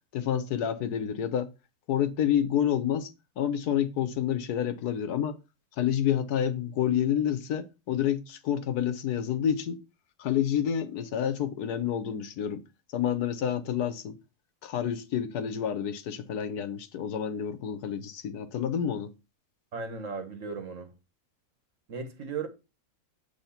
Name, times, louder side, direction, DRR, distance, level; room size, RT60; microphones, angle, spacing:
voice 1, 0.1-1.5 1.9-5.4 5.8-9.8 10.2-12.6 12.9-14.2 14.6-19.1, left 9 dB, 85° left, 1.4 m, -29 dB
voice 2, 19.7-20.9 21.9-22.5, right 5 dB, 55° right, 1.6 m, -36 dB
8.6 x 3.5 x 5.7 m
omnidirectional pair, 1.6 m